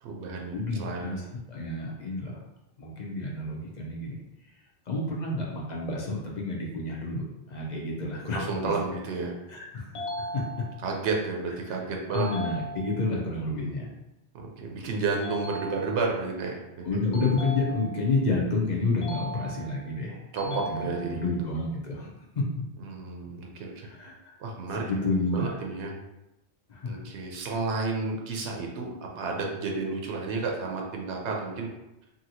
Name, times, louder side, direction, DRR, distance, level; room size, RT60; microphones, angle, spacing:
voice 1, 0.0-0.5 0.8-1.1 8.3-9.3 10.8-12.3 14.3-16.9 20.3-21.2 22.8-23.9 24.4-24.8 25.3-25.9 26.9-31.7, right 4 dB, 90° right, 0 dB, 0.9 m, -31 dB
voice 2, 0.5-2.4 2.8-7.2 7.5-8.8 9.5-10.1 10.3-10.4 11.7-11.8 12.1-13.9 16.8-22.4 23.8-24.1 24.7-25.7 26.7-27.0, left 2 dB, 50° left, -2 dB, 0.6 m, -30 dB
sound 1, 9.9-11.0 12.1-13.1 15.2-16.2 17.1-18.2 19.0-19.9 20.4-21.4, right 1 dB, 80° left, 0.9 m, -38 dB
2.8 x 2.7 x 2.7 m, 0.94 s
omnidirectional pair, 1.1 m